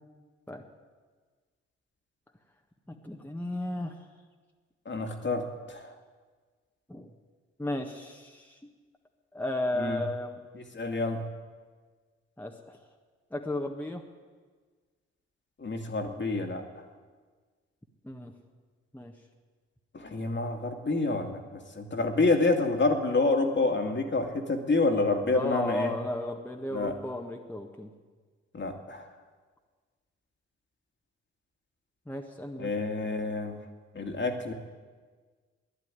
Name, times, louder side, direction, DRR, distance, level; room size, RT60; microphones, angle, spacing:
voice 1, 2.9-4.0 6.9-7.1 7.6-8.6 9.3-10.4 12.4-12.8 13.3-14.0 18.0-18.3 18.9-19.1 25.3-27.9 32.1-32.7, left 1 dB, 5° left, 2 dB, 1.5 m, -34 dB
voice 2, 4.9-5.9 9.8-10.0 10.5-11.2 15.6-16.6 19.9-25.9 26.7-27.0 28.5-29.1 32.6-33.6 33.9-34.5, left 3 dB, 35° left, 3 dB, 2.2 m, -28 dB
12.5 x 10.5 x 9.7 m, 1.5 s
hypercardioid pair, 45°, 32 cm